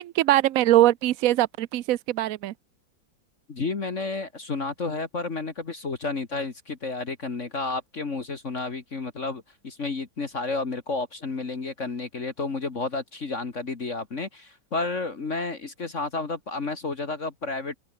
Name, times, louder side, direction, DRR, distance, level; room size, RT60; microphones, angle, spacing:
voice 1, 0.0-2.5, right 14 dB, 80° right, 0.7 m, -22 dB
voice 2, 3.5-17.8, left 3 dB, 40° left, 2.0 m, -31 dB
omnidirectional pair, 2.2 m